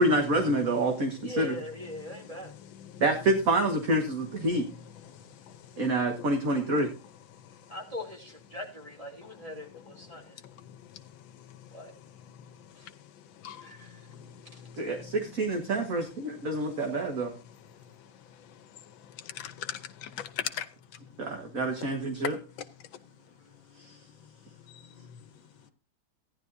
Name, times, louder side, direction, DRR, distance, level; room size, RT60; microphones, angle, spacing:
voice 1, 0.0-1.5 3.0-4.6 5.8-6.9 14.8-16.0 16.4-17.3 21.2-22.4 23.9-24.0, right 1 dB, 45° right, 2.0 m, -27 dB
voice 2, 1.2-2.5 7.7-10.4 11.7-11.9 12.7-12.9 13.6-14.0 14.5-14.6, left 1 dB, 15° right, 3.2 m, -41 dB
voice 3, 1.9-3.0 4.4-5.9 6.2-6.3 6.7-6.8 7.3-7.8 9.2-9.3 9.7-15.1 16.7-16.9 17.5-20.7 22.2-22.7 23.9-24.3 24.7-25.2, left 9 dB, 85° left, 1.6 m, -44 dB
16.0 x 11.0 x 2.7 m
omnidirectional pair, 2.1 m